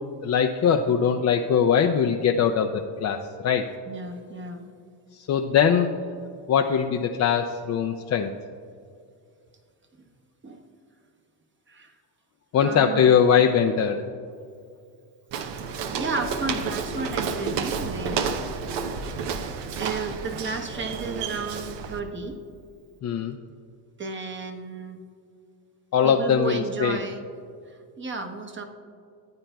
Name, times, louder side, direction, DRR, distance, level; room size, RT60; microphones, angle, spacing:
voice 1, 0.2-3.7 5.1-6.0 6.5-8.3 12.5-14.0 23.0-23.4 25.9-27.0, left 7 dB, 40° left, 4 dB, 0.5 m, -21 dB
voice 2, 3.9-4.7 10.4-10.6 11.7-11.9 12.5-13.2 16.0-18.2 19.8-22.4 24.0-25.0 26.0-27.2 27.7-28.6, right 3 dB, 25° right, 5 dB, 1.0 m, -33 dB
Walk footsteps, 15.3-22.0, right 5 dB, 65° right, 0.9 m, -31 dB
14.5 x 8.8 x 2.3 m, 2.3 s
supercardioid pair, 85°, 46 cm